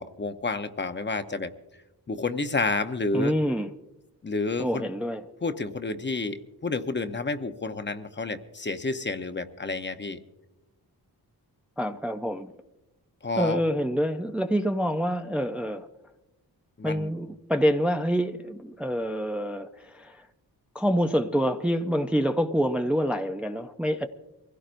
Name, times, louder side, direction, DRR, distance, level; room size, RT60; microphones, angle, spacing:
voice 1, 0.0-1.5 2.1-3.3 4.2-4.9 5.4-10.2 13.2-13.6 16.8-17.1, left 3 dB, 30° left, 9 dB, 0.8 m, -30 dB
voice 2, 3.1-3.7 4.6-5.2 11.8-12.5 13.4-15.9 16.8-20.3 20.7-24.1, equal, 5° right, 5 dB, 0.5 m, -26 dB
24.0 x 16.5 x 2.6 m, 0.98 s
wide cardioid pair, 110°, 39 cm